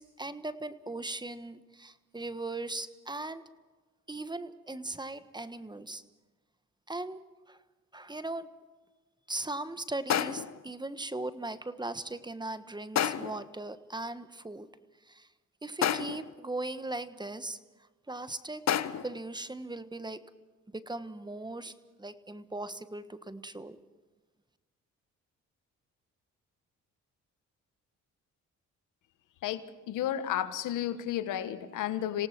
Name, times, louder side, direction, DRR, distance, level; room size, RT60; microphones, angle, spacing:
voice 1, 0.0-3.4 4.1-6.0 6.9-7.2 7.5-7.6 7.9-8.5 9.3-14.7 15.1-15.3 15.6-17.6 18.1-18.6 19.0-20.2 20.7-21.7 22.0-23.8, right 2 dB, 15° right, 12 dB, 1.3 m, -38 dB
sound 1, 10.1-10.6 12.9-13.5 15.8-16.3 18.7-19.2, left 9 dB, 60° left, 1.1 m, -30 dB
voice 2, 29.4-32.3, left 11 dB, 85° left, 11 dB, 1.5 m, -32 dB
27.5 x 18.0 x 6.0 m, 1.3 s
cardioid pair, 75°, 30 cm